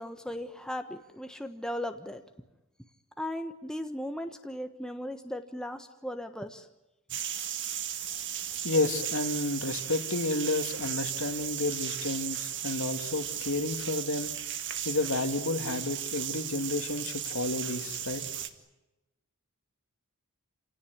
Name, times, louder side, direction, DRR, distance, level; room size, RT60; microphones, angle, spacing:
voice 1, 0.0-2.2 3.2-6.7, left 1 dB, 5° left, 1.3 m, -37 dB
sound 1, 7.1-18.5, right 10 dB, 55° right, 2.0 m, -36 dB
voice 2, 8.6-14.3 14.8-18.4, left 2 dB, 65° left, 2.5 m, -31 dB
29.0 x 17.5 x 10.0 m
head